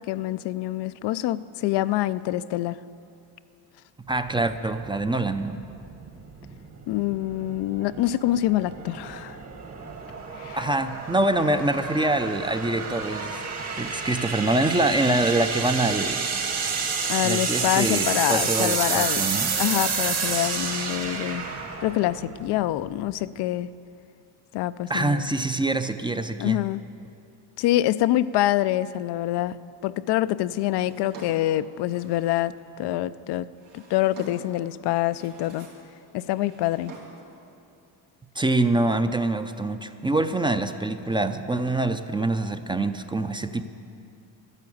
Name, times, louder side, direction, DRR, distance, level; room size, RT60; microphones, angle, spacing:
voice 1, 0.0-2.8 6.9-9.4 10.4-10.6 17.1-19.3 19.6-21.5 21.8-23.7 24.5-25.2 26.4-26.8 27.6-29.6 29.8-33.5 33.7-35.7 36.1-36.9, left 14 dB, 70° left, 14 dB, 0.5 m, -25 dB
voice 2, 4.1-5.6 10.5-13.4 13.7-16.2 17.2-19.5 24.9-26.6 38.4-43.6, right 2 dB, 10° right, 9 dB, 0.5 m, -25 dB
sound 1, 4.3-23.2, right 5 dB, 40° right, 1.6 m, -30 dB
Drawer open or close, 30.7-32.5 33.3-34.6 35.0-35.9 36.2-37.3, right 3 dB, 85° right, 3.4 m, -46 dB
12.5 x 11.0 x 8.6 m, 2.6 s
cardioid pair, 100°, 42 cm